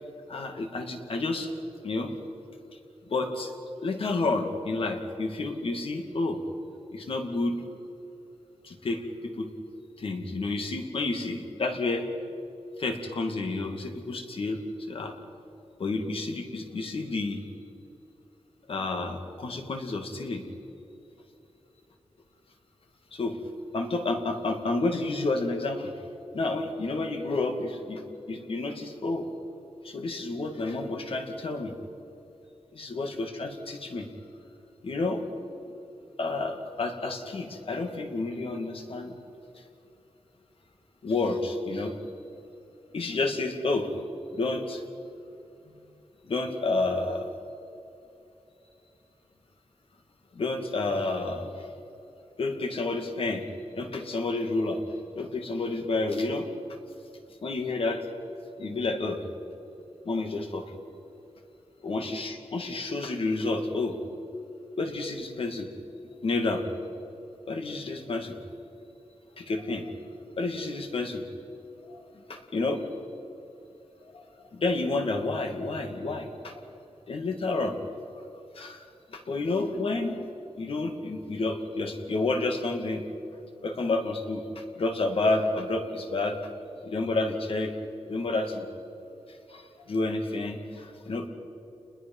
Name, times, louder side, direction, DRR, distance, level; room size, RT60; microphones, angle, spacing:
voice 1, 0.3-1.5 1.8-2.1 3.1-3.5 3.8-6.4 6.9-7.6 8.6-9.5 10.0-12.1 12.8-14.6 14.9-15.2 15.8-17.4 18.7-20.4 23.1-23.4 23.7-25.9 26.3-28.0 28.3-29.3 29.8-31.7 32.8-34.1 34.8-35.2 36.2-39.2 39.6-39.7 41.0-42.0 42.9-43.9 44.3-44.8 46.3-47.3 50.3-51.7 52.4-53.5 53.8-54.8 55.2-56.5 57.4-58.1 58.6-59.2 60.1-60.8 61.8-64.0 64.8-65.7 66.2-66.6 67.5-68.4 69.4-69.9 70.4-71.2 71.8-72.8 74.0-74.2 74.5-76.6 77.1-77.8 78.5-78.8 79.1-80.3 80.6-83.0 83.6-86.4 86.8-87.7 88.1-88.7 89.5-91.3, left 2 dB, 60° left, 4 dB, 2.4 m, -30 dB
29.0 x 21.5 x 5.6 m, 2.8 s
wide cardioid pair, 170°, 11 cm